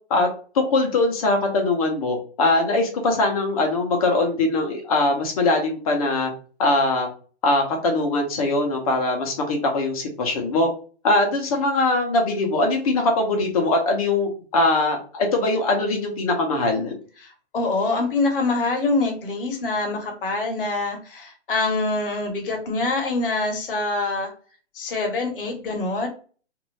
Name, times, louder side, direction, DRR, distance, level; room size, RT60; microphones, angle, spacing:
voice 1, 0.5-6.3 6.6-7.1 7.4-10.7 11.0-16.9, left 2 dB, 35° left, 2 dB, 0.8 m, -21 dB
voice 2, 17.2-24.3 24.7-26.1, left 3 dB, 50° left, 3 dB, 1.0 m, -25 dB
2.6 x 2.5 x 3.2 m, 0.39 s
hypercardioid pair, 160°, 34 cm